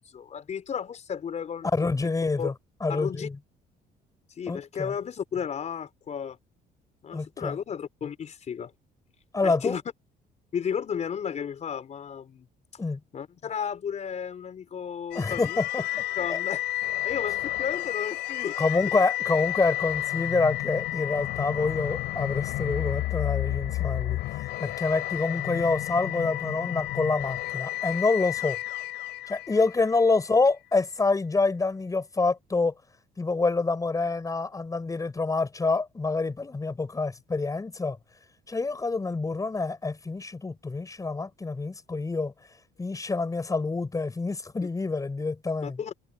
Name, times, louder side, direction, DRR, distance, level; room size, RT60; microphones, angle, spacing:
voice 1, 0.0-1.7 2.4-2.5 2.9-3.3 4.4-6.4 7.0-8.7 9.4-9.8 10.5-12.4 13.1-15.6 16.2-16.6 17.0-18.6 44.6-44.7 45.6-46.1, left 7 dB, 45° left, 4.7 m, -33 dB
voice 2, 1.7-2.5 2.8-3.4 4.5-4.9 7.1-7.6 9.3-9.8 12.8-13.0 15.1-15.8 16.3-16.4 18.6-24.2 24.6-28.6 29.3-32.7 33.2-38.0 38.5-42.3 42.8-45.8, left 3 dB, 20° left, 6.5 m, -27 dB
sound 1, 15.1-30.2, left 16 dB, 85° left, 6.3 m, -31 dB
open air
cardioid pair, 110°, 17 cm